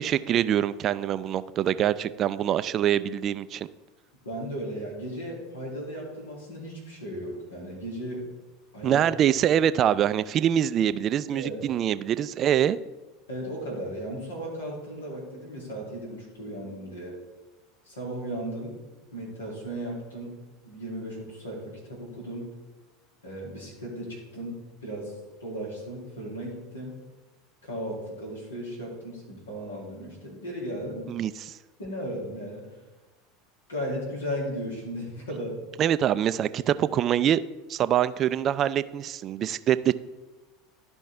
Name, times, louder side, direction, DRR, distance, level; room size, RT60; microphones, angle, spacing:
voice 1, 0.0-3.7 8.8-12.8 31.1-31.5 35.8-37.4 37.7-39.9, right 10 dB, 40° right, 15 dB, 0.3 m, -24 dB
voice 2, 4.2-8.3 8.7-9.0 11.3-11.6 13.3-17.1 17.8-18.7 19.1-20.3 20.6-21.6 21.9-22.5 23.2-25.1 25.4-27.0 27.6-31.0 31.8-32.6 33.7-35.5, equal, 80° left, -3 dB, 2.7 m, -36 dB
12.0 x 5.3 x 3.5 m, 1.2 s
figure-of-eight pair, 80°, 0 cm